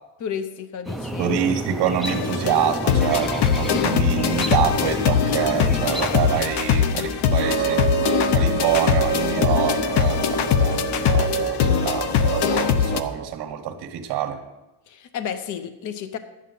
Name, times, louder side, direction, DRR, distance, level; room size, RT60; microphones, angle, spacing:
voice 1, 0.2-1.4 14.9-16.2, left 8 dB, 50° left, 10 dB, 0.8 m, -32 dB
sound 1, 0.8-6.4, right 1 dB, ahead, 0.3 m, -31 dB
voice 2, 1.2-8.0 8.3-14.4, right 9 dB, 70° right, 3 dB, 1.3 m, -26 dB
sound 2, 2.0-13.0, left 7 dB, 85° left, 0.9 m, -22 dB
sound 3, 7.4-13.3, right 9 dB, 35° right, 1.1 m, -28 dB
12.0 x 8.5 x 5.5 m, 0.98 s
cardioid pair, 160°, 40 cm